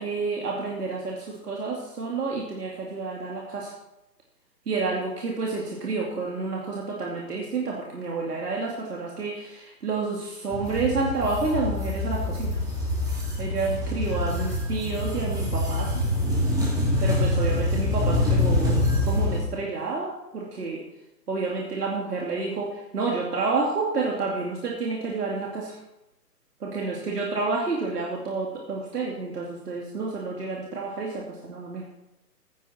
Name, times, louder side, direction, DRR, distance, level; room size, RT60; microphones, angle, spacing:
voice 1, 0.0-3.7 4.7-12.6 13.4-16.1 17.0-20.8 21.3-25.8 26.6-31.9, right 3 dB, 65° right, -2 dB, 2.8 m, -29 dB
sound 1, 10.5-19.4, left 1 dB, 5° right, 2.9 m, -25 dB
14.0 x 10.0 x 4.4 m, 0.94 s
figure-of-eight pair, 140°, 50 cm